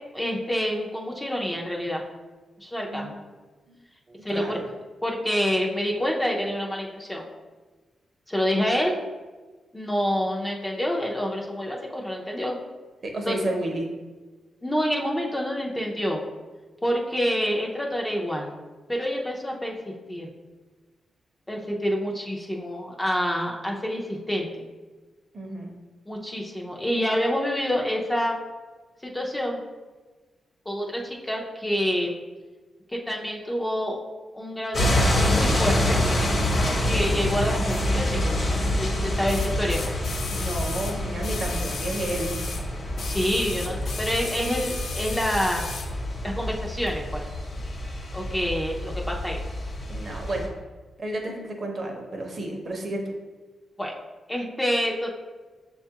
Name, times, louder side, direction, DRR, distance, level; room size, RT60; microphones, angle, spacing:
voice 1, 0.1-2.0 2.6-3.1 4.2-4.6 5.0-7.2 8.3-9.0 9.7-12.6 13.3-13.4 14.6-16.2 16.8-18.5 18.9-20.3 21.5-24.6 26.1-28.4 29.0-29.6 30.7-32.1 32.9-34.0 34.3-36.0 36.8-38.3 38.8-39.8 43.0-45.6 46.2-47.3 48.1-49.4 53.8-53.9 54.3-55.1, equal, 10° left, -1 dB, 0.5 m, -27 dB
voice 2, 4.1-4.6 13.0-13.9 25.3-25.7 40.3-42.4 49.9-50.5 51.0-53.1, right 1 dB, 45° right, 1 dB, 0.7 m, -31 dB
sound 1, 34.7-50.5, left 1 dB, 35° left, 0.9 m, -27 dB
sound 2, 37.7-37.8 39.3-42.7 43.0-45.9 46.9-47.0, left 4 dB, 65° left, 0.5 m, -35 dB
6.2 x 2.3 x 2.8 m, 1.3 s
cardioid pair, 105°, 0 cm